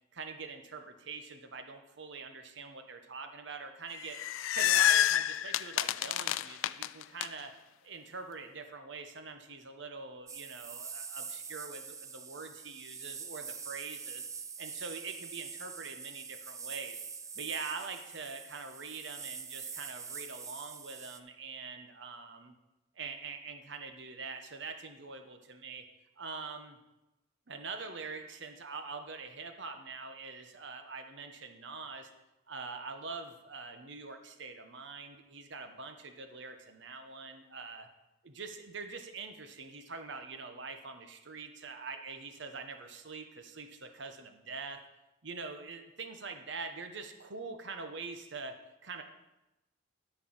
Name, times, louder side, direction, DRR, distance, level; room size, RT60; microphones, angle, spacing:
voice 1, 0.1-4.2 4.5-7.5 7.8-14.3 14.6-17.0 17.3-22.5 22.9-25.8 26.2-26.8 27.5-32.1 32.5-37.9 38.2-44.9 45.2-49.0, right 4 dB, 65° right, 6 dB, 1.1 m, -44 dB
sound 1, 3.9-7.3, left 12 dB, 85° left, 0.3 m, -28 dB
sound 2, 10.3-21.2, right 6 dB, 15° right, 0.4 m, -44 dB
12.5 x 4.7 x 6.0 m, 0.97 s
head